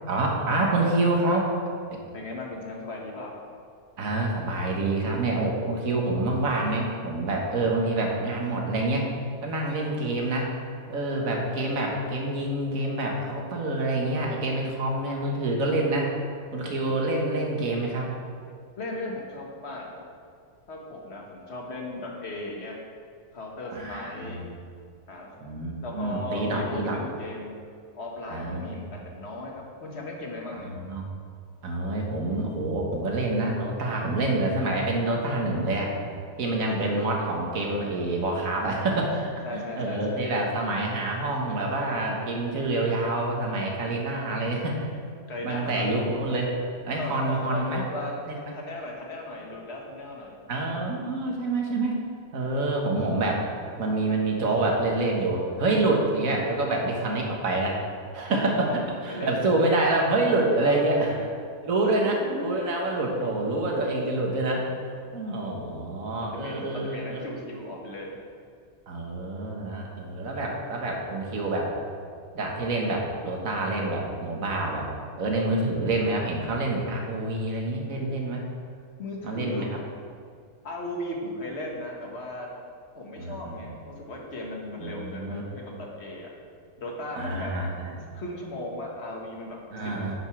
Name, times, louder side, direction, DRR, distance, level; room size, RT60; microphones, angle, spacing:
voice 1, 0.1-1.5 1.9-2.0 4.0-9.1 9.4-10.5 10.9-16.1 16.5-18.1 23.7-24.5 25.4-27.0 28.3-28.6 30.8-31.1 31.6-35.9 36.4-44.9 45.4-46.5 46.9-47.8 48.3-48.4 50.5-52.0 52.3-53.5 53.8-57.8 58.1-61.2 61.6-64.7 65.1-67.2 68.9-71.7 72.3-74.9 75.2-78.4 79.2-79.7 83.2-83.6 84.8-85.4 87.2-88.0 89.7-90.1, right 2 dB, 60° right, -1 dB, 1.8 m, -27 dB
voice 2, 2.1-3.3 18.8-20.1 20.7-22.8 23.3-24.4 25.1-25.3 25.8-27.5 27.9-30.7 39.4-40.3 44.4-44.6 45.3-45.8 46.4-46.5 47.0-50.4 58.6-58.8 59.1-59.5 60.6-61.3 62.0-62.2 65.4-65.7 66.2-68.2 79.0-79.7 80.6-82.5 82.9-86.3 86.8-87.5 88.1-90.1, left 1 dB, 45° left, -1 dB, 1.7 m, -37 dB
10.0 x 5.3 x 6.0 m, 2.2 s
omnidirectional pair, 1.6 m